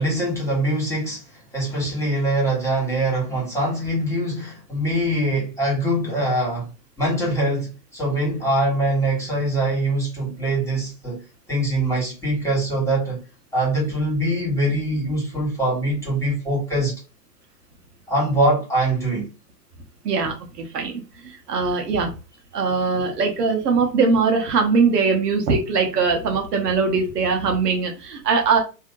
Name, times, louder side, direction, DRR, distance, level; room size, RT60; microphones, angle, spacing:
voice 1, 0.0-6.7 7.0-11.2 11.5-13.2 13.5-16.9 18.1-19.3, right 1 dB, 5° left, 1.9 m, -23 dB
voice 2, 20.7-22.1 22.5-28.6, right 4 dB, 70° right, 1.0 m, -21 dB
3.5 x 2.7 x 2.4 m
hypercardioid pair, 110°, 50 cm